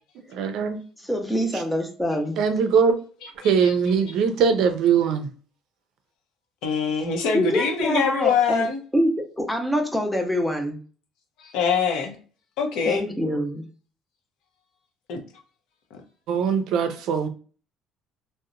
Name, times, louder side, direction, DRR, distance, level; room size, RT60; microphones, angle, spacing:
voice 1, 0.3-0.8 2.4-3.0 3.4-5.3 16.3-17.3, right 6 dB, 65° right, 0.4 m, -21 dB
voice 2, 1.0-2.4 7.3-8.7 8.9-10.8 12.9-13.7, equal, 5° left, 0.5 m, -25 dB
voice 3, 3.2-3.8 4.1-4.2 6.6-8.8 11.4-12.2 12.6-13.0 15.1-15.2 15.9-16.0, left 6 dB, 80° left, 0.6 m, -24 dB
2.8 x 2.1 x 2.4 m
cardioid pair, 150°, 0 cm